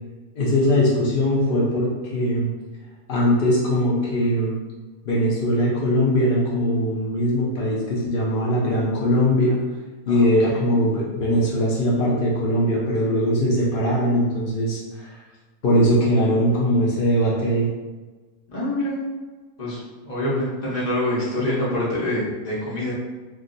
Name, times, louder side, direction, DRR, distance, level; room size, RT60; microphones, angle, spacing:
voice 1, 0.4-2.5 3.1-4.5 5.0-9.6 10.1-15.2 15.6-17.7, equal, 85° left, -5 dB, 0.4 m, -21 dB
voice 2, 10.1-10.6 18.5-19.0 19.6-22.9, left 1 dB, 30° left, -7 dB, 0.8 m, -26 dB
2.6 x 2.4 x 3.9 m, 1.3 s
omnidirectional pair, 1.7 m